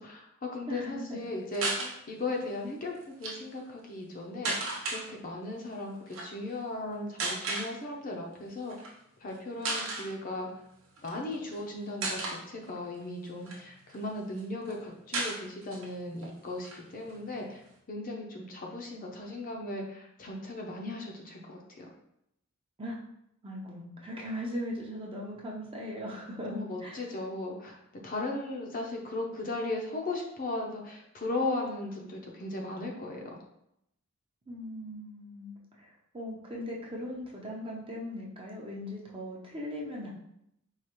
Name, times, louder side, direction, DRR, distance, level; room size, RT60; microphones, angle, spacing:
voice 1, 0.0-8.7 9.2-10.6 11.0-17.6 17.9-21.9 26.5-27.8 28.0-33.4, left 2 dB, 40° left, 0 dB, 0.6 m, -37 dB
voice 2, 0.7-1.2 22.8-23.0 23.4-27.1 34.5-40.1, equal, 25° right, -3 dB, 0.7 m, -39 dB
sound 1, 1.5-1.9 3.0-3.3 4.4-5.0 6.1-6.3 7.2-7.7 8.7-8.9 9.3-9.4 9.6-10.1 11.0-11.6 12.0-12.4 13.0-14.0 14.4-14.5 14.7-14.8 15.1-15.9 16.2-16.3 16.6-17.7, right 2 dB, 65° right, 0.8 m, -34 dB
4.8 x 2.4 x 2.9 m, 0.79 s
head